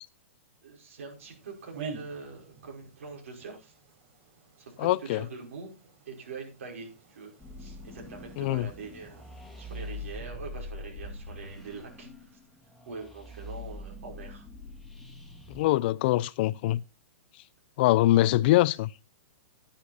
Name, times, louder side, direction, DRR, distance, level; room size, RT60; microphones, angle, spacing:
voice 1, 0.6-3.7 4.6-5.7 6.1-7.3 7.6-9.2 9.6-12.3 12.9-14.4, right 4 dB, 75° right, 5.5 m, -43 dB
sound 1, 1.1-10.2, right 5 dB, 50° right, 4.4 m, -49 dB
voice 2, 4.8-5.3 8.4-8.7 15.5-16.8 17.8-18.9, left 16 dB, 50° left, 0.5 m, -23 dB
sound 2, 7.4-15.7, left 2 dB, 5° left, 2.2 m, -43 dB
10.5 x 9.4 x 4.2 m
hypercardioid pair, 140°, 7 cm